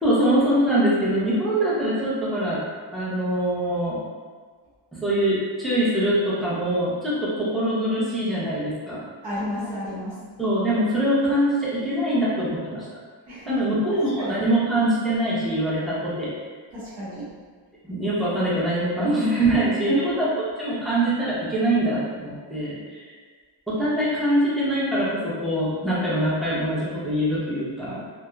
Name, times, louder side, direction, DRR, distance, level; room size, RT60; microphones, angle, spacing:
voice 1, 0.0-2.6 2.9-4.0 4.9-9.0 10.4-12.8 13.5-16.3 17.8-20.3 20.6-23.1 23.7-28.0, right 1 dB, ahead, -9 dB, 0.5 m, -23 dB
voice 2, 9.2-10.1 13.3-14.4 16.7-17.2 19.8-20.1, equal, 65° right, -12 dB, 0.9 m, -30 dB
2.7 x 2.0 x 2.2 m, 1.5 s
wide cardioid pair, 160°, 47 cm